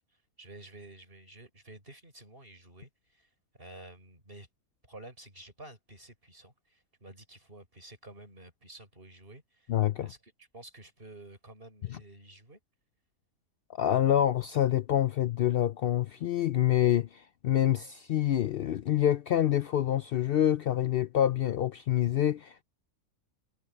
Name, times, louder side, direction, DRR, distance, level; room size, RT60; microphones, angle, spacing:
voice 1, 0.4-4.5 4.9-9.7 10.0-12.6, right 2 dB, 35° right, 6.3 m, -51 dB
voice 2, 9.7-10.1 13.8-22.6, left 11 dB, 85° left, 0.5 m, -26 dB
omnidirectional pair, 1.6 m